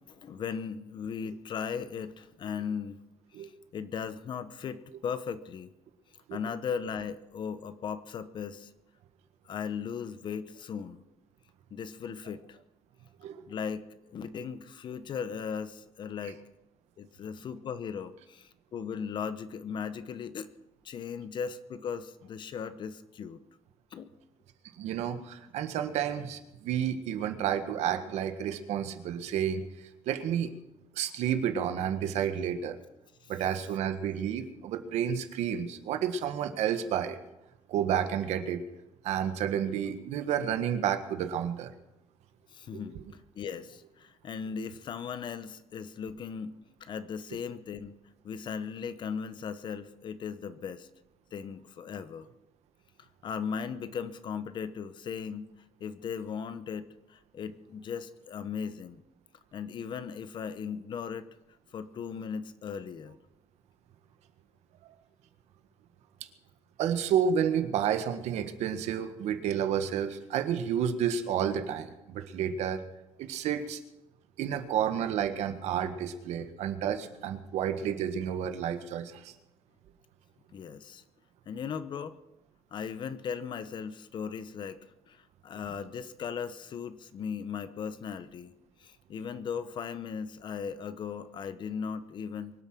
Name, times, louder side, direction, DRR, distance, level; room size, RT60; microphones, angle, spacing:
voice 1, 0.1-3.0 3.3-5.7 6.3-8.7 9.4-11.0 11.7-12.6 13.5-16.4 17.0-20.5 20.8-23.4 23.9-24.1 33.2-33.3 42.5-43.0 43.4-48.0 48.2-50.9 51.3-52.3 53.0-55.5 55.8-59.0 59.5-61.3 61.7-63.2 80.5-81.0 81.5-82.2 82.7-84.8 85.1-88.5 88.8-92.5, left 6 dB, 45° left, 13 dB, 0.9 m, -37 dB
voice 2, 24.8-29.6 30.0-30.5 30.9-32.8 33.3-37.2 37.7-38.6 39.0-41.7 42.7-43.0 66.8-72.8 73.2-73.8 74.4-79.3, right 9 dB, 85° right, 8 dB, 1.6 m, -30 dB
23.5 x 8.8 x 6.1 m, 0.95 s
cardioid pair, 160°, 11 cm